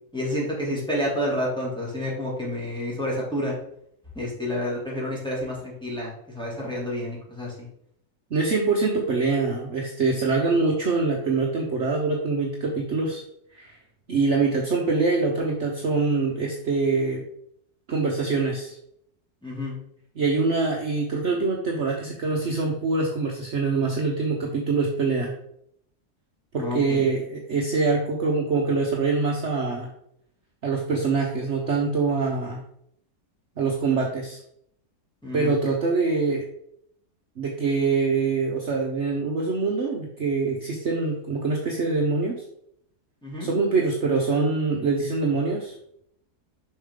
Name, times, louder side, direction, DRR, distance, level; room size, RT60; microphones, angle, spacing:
voice 1, 0.1-3.6 4.1-7.7 19.4-19.7 26.5-27.1 35.2-35.6 43.2-43.5, left 1 dB, 5° left, -5 dB, 2.4 m, -29 dB
voice 2, 8.3-13.2 13.5-13.8 14.1-17.2 17.9-18.7 20.2-25.3 26.5-29.9 30.6-32.6 33.6-34.4 35.3-36.4 37.4-42.3 43.4-45.7, right 4 dB, 50° right, -1 dB, 1.1 m, -24 dB
7.0 x 5.5 x 3.7 m, 0.71 s
omnidirectional pair, 1.7 m